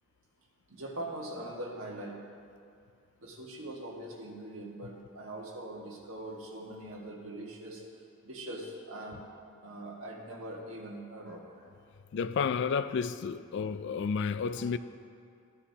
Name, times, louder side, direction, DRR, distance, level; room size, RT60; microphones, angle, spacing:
voice 1, 0.7-2.2 3.2-7.8 8.2-9.2 9.6-11.4 13.1-13.4 14.5-14.8, right 1 dB, 65° right, 1.6 m, -42 dB
voice 2, 12.1-14.8, left 6 dB, 55° left, 0.3 m, -31 dB
14.5 x 9.8 x 2.8 m
head